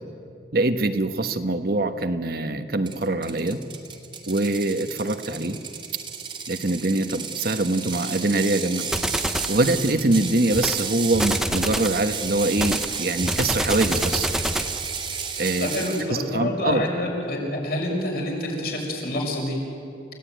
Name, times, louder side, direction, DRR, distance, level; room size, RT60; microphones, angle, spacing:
voice 1, 0.5-3.6 4.3-5.6 6.5-8.8 9.5-14.3 15.4-15.7 16.1-16.8, right 2 dB, 60° right, 8 dB, 1.2 m, -23 dB
Ratchet pawl, 2.9-16.1, right 6 dB, 30° right, 2.0 m, -33 dB
sound 1, 8.9-9.6 10.5-10.8 11.1-12.0 12.6-14.8, equal, 5° right, 0.9 m, -26 dB
voice 2, 15.6-19.6, left 1 dB, 55° left, 0 dB, 6.1 m, -27 dB
29.5 x 16.5 x 9.3 m, 2.6 s
head